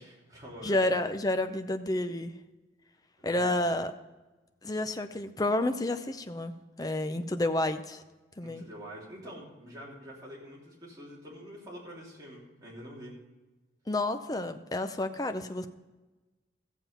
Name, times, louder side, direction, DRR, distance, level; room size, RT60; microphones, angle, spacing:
voice 1, 0.0-0.9 3.2-3.6 8.4-13.1, equal, 20° right, -5 dB, 3.2 m, -46 dB
voice 2, 0.6-2.3 3.2-3.9 4.6-6.5 6.8-8.0 8.4-8.6 13.9-15.7, left 1 dB, 20° left, 8 dB, 0.6 m, -30 dB
14.5 x 7.4 x 5.6 m, 1.2 s
head